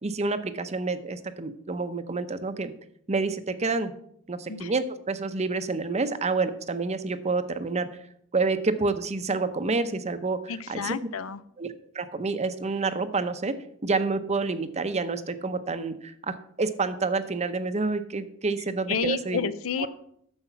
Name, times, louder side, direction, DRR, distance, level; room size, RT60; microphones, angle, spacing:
voice 1, 0.0-2.7 3.1-3.9 4.3-7.9 8.3-10.9 11.6-11.7 11.9-13.5 13.8-19.5 19.8-19.9, right 3 dB, 30° right, 11 dB, 0.7 m, -28 dB
voice 2, 10.5-11.4 18.9-19.9, left 6 dB, 75° left, 15 dB, 0.6 m, -30 dB
9.8 x 7.0 x 5.8 m, 0.69 s
head